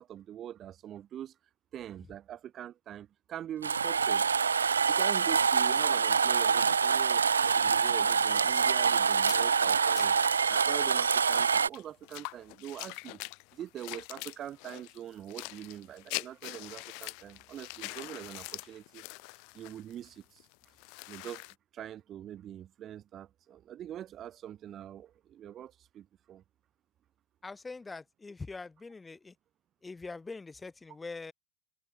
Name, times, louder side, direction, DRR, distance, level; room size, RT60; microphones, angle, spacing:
voice 1, 0.0-1.3 1.7-4.3 4.9-13.2 13.5-19.0 19.5-20.5 21.1-21.5 21.7-26.4, right 11 dB, 30° right, 2.2 m, -43 dB
sound 1, 3.6-11.7, right 6 dB, 70° right, 0.4 m, -26 dB
sound 2, 4.9-11.5, left 10 dB, 60° left, 3.3 m, -57 dB
sound 3, 7.6-10.2 10.8-10.9 11.1-21.5, left 37 dB, 45° left, 0.5 m, -44 dB
voice 2, 27.4-29.4 29.8-31.3, left 3 dB, 10° left, 2.5 m, -43 dB
figure-of-eight pair, 90°, 0 cm